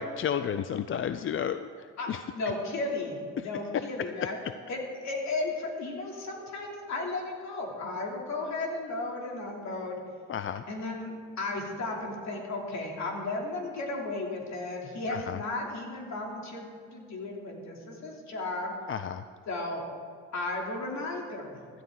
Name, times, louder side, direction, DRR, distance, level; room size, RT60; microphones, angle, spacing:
voice 1, 0.0-1.7 2.1-2.2 10.3-10.6 15.3-15.4 18.9-19.2, left 8 dB, 45° left, 11 dB, 0.5 m, -31 dB
voice 2, 2.0-4.4 4.7-10.0 10.7-18.7 19.5-19.9 20.3-21.7, left 2 dB, 65° left, 0 dB, 3.0 m, -34 dB
16.5 x 13.0 x 3.8 m, 2.2 s
cardioid pair, 90°, 30 cm